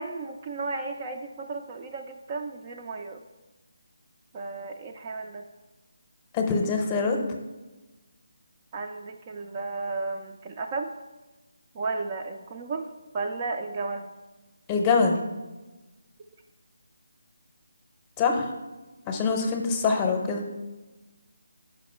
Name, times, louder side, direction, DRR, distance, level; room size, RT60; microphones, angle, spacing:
voice 1, 0.0-3.2 4.3-5.5 8.7-10.9 11.7-12.9 13.1-14.1 19.4-19.5, right 3 dB, 30° right, 4 dB, 0.4 m, -34 dB
voice 2, 6.3-7.2 14.7-15.2 18.2-18.5 19.1-20.4, left 4 dB, 20° left, 3 dB, 0.7 m, -24 dB
6.2 x 5.0 x 4.3 m, 1.1 s
figure-of-eight pair, 160°, 0 cm